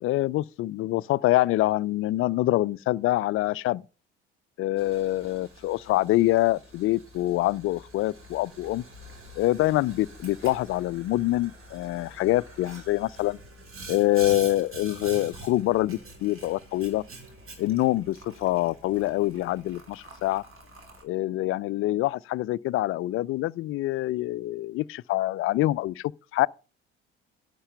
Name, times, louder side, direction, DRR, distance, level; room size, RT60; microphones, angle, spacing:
voice 1, 0.0-3.8 4.6-8.8 9.4-13.4 13.9-17.0 17.6-20.4 21.0-26.0 26.3-26.5, left 16 dB, 40° left, 0.4 m, -25 dB
Boiling, 4.8-21.0, right 2 dB, 40° right, 3.2 m, -46 dB
11.0 x 5.3 x 6.7 m
figure-of-eight pair, 55°, 33 cm